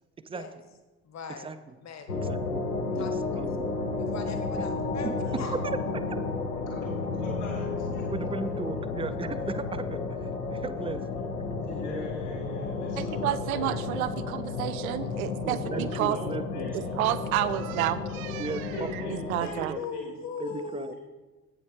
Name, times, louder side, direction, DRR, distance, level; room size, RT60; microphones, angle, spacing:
voice 1, 1.0-1.5 1.8-2.2 2.9-3.6 4.0-5.6 19.4-20.9, left 5 dB, 40° left, 6 dB, 1.3 m, -39 dB
sound 1, 2.1-19.5, left 4 dB, 85° left, 0.9 m, -32 dB
voice 2, 2.3-2.7 2.9-3.7 4.6-4.7 5.0-5.1 5.6-5.8 8.1-10.0 10.5-11.0 15.4-16.7 18.4-18.6 19.0-19.8 20.4-20.9, right 5 dB, 15° right, 12 dB, 0.4 m, -36 dB
voice 3, 6.7-8.0 11.6-13.7 15.5-17.0 18.7-20.1, left 1 dB, 60° left, -3 dB, 2.7 m, -40 dB
voice 4, 13.0-16.2 16.7-18.7 19.3-19.8, right 13 dB, 75° right, 15 dB, 0.6 m, -30 dB
8.3 x 6.7 x 4.5 m, 1.2 s
figure-of-eight pair, 45°, 43 cm